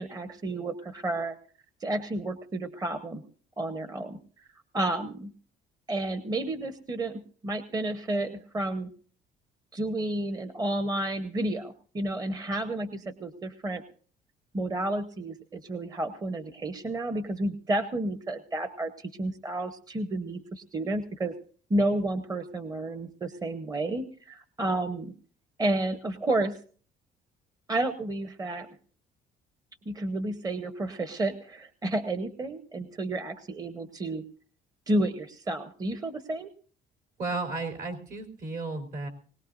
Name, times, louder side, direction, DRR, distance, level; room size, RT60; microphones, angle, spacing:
voice 1, 0.0-1.4 1.8-3.2 3.6-4.5 4.7-5.3 5.9-8.9 9.7-13.8 14.5-21.3 21.7-25.1 25.6-26.6 27.7-28.7 29.9-34.2 34.9-36.5, right 1 dB, 20° right, 10 dB, 0.9 m, -31 dB
voice 2, 37.2-39.1, right 3 dB, 60° right, 4 dB, 3.8 m, -33 dB
21.0 x 19.0 x 2.6 m, 0.44 s
cardioid pair, 110°, 17 cm